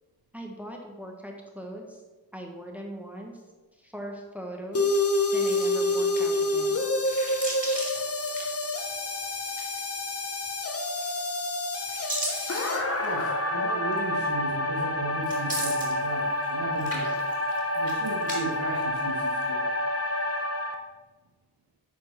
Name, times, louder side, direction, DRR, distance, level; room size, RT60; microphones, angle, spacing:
voice 1, 0.3-2.0 2.3-3.4 3.7-5.1 5.3-6.8, equal, 5° right, 0 dB, 1.3 m, -40 dB
sound 1, 4.7-20.7, left 2 dB, 40° left, 1.0 m, -28 dB
sound 2, 5.3-6.5 7.0-9.0 9.3-10.0 10.8-11.3 11.7-13.3 13.9-14.0 15.2-16.5 16.8-18.4 18.7-19.4, right 1 dB, 20° right, 2.9 m, -37 dB
voice 2, 13.0-17.1 17.7-19.6, right 3 dB, 90° right, -2 dB, 1.3 m, -36 dB
8.5 x 4.6 x 5.9 m, 1.2 s
wide cardioid pair, 70°, 37 cm